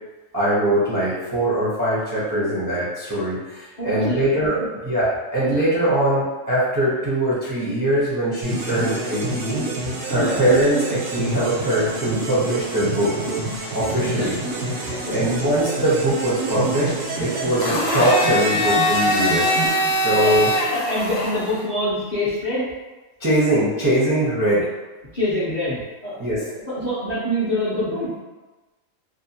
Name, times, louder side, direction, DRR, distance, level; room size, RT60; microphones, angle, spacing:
voice 1, 0.3-9.7 10.1-13.1 13.7-14.4 14.6-16.9 17.2-19.5 19.9-20.5 23.2-24.7 26.2-26.5, right 1 dB, 25° right, -9 dB, 0.4 m, -22 dB
voice 2, 3.8-4.2 4.6-4.7 10.1-10.4 14.2-14.3 14.9-15.3 20.2-20.3 20.7-22.7 25.1-26.2 26.7-28.2, left 1 dB, 45° left, -9 dB, 0.6 m, -25 dB
sound 1, 8.4-20.5, right 3 dB, 90° right, 1.1 m, -28 dB
Domestic sounds home sounds, 17.6-21.6, left 1 dB, 85° left, 1.0 m, -22 dB
2.7 x 2.5 x 2.7 m, 1.2 s
omnidirectional pair, 1.4 m